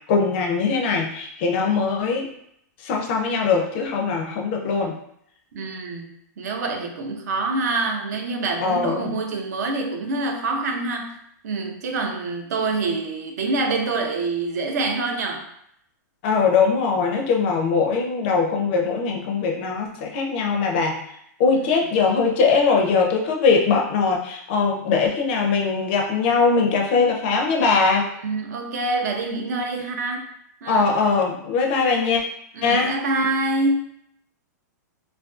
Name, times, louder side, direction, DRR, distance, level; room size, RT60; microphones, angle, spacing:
voice 1, 0.1-2.3 2.8-4.9 8.6-9.1 16.2-21.0 21.4-28.1 30.7-32.2 32.6-33.0, left 4 dB, 40° left, 1 dB, 0.4 m, -21 dB
voice 2, 5.5-11.2 11.4-15.4 21.5-21.7 28.2-30.3 30.6-30.9 32.5-33.9, right 3 dB, 65° right, 3 dB, 0.5 m, -26 dB
2.4 x 2.2 x 2.4 m, 0.72 s
supercardioid pair, 160°, 10 cm